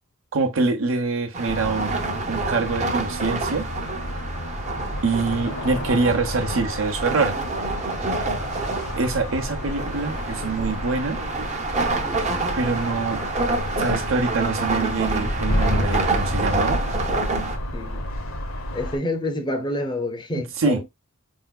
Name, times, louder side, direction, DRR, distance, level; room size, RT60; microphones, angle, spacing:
voice 1, 0.3-1.9 2.3-3.7 5.0-7.3 8.9-11.2 12.6-13.2 13.8-16.8 20.6-20.8, right 3 dB, 65° right, 0.9 m, -24 dB
sound 1, 1.3-17.6, right 3 dB, 35° right, 0.7 m, -28 dB
sound 2, 1.5-19.0, left 1 dB, 70° left, 1.0 m, -30 dB
voice 2, 17.7-18.1 18.7-20.9, left 1 dB, 20° left, 0.6 m, -28 dB
4.5 x 3.6 x 2.2 m
head